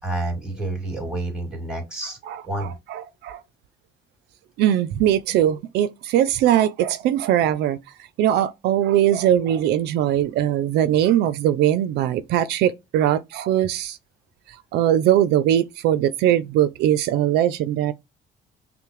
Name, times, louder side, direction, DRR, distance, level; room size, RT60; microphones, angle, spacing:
voice 1, 0.0-2.2 2.4-2.7, right 2 dB, 5° right, 2.4 m, -29 dB
voice 2, 2.3-3.4 4.6-7.8 8.2-14.0 14.7-17.9, right 11 dB, 80° right, 0.4 m, -20 dB
5.7 x 2.1 x 3.1 m
cardioid pair, 110°, 17 cm